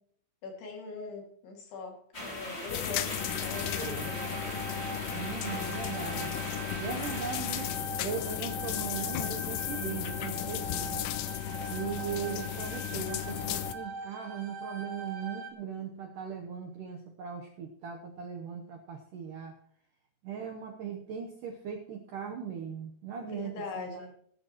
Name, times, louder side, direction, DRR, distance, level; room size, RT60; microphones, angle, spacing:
voice 1, 0.4-4.4 23.2-24.1, left 3 dB, 70° left, 1 dB, 4.3 m, -41 dB
sound 1, 2.1-7.7, left 1 dB, 20° left, 2.0 m, -40 dB
sound 2, 2.7-13.8, left 13 dB, 90° left, 3.0 m, -35 dB
sound 3, 3.2-15.5, right 3 dB, 50° right, 1.5 m, -42 dB
voice 2, 3.5-4.1 5.1-6.4 6.8-7.7 8.0-11.1 11.7-19.5 20.2-24.1, right 7 dB, 75° right, 2 dB, 1.9 m, -39 dB
19.5 x 10.5 x 3.0 m, 0.66 s
omnidirectional pair, 5.1 m